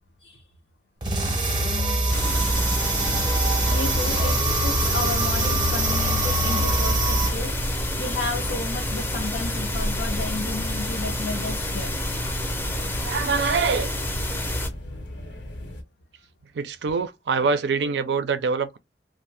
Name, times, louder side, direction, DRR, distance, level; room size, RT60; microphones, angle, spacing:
sound 1, 1.0-7.3, right 2 dB, 25° right, 0.7 m, -23 dB
sound 2, 2.1-14.7, left 1 dB, 10° left, 0.5 m, -29 dB
voice 1, 3.7-12.0, left 3 dB, 70° left, 0.5 m, -33 dB
sound 3, 4.4-15.8, left 1 dB, 90° left, 0.9 m, -37 dB
voice 2, 13.0-13.9 16.5-18.8, right 5 dB, 80° right, 0.4 m, -24 dB
2.6 x 2.0 x 3.1 m
head